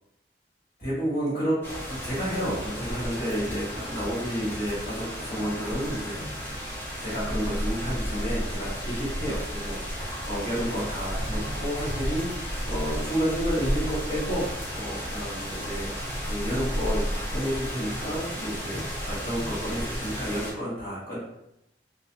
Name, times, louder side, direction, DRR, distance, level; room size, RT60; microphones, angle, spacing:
voice 1, 0.8-1.6 1.9-6.3 7.0-14.5 14.7-15.9 16.3-21.2, equal, 50° left, -9 dB, 1.1 m, -31 dB
sound 1, 1.6-20.5, equal, 10° left, 0.5 m, -33 dB
2.3 x 2.3 x 2.7 m, 0.83 s
head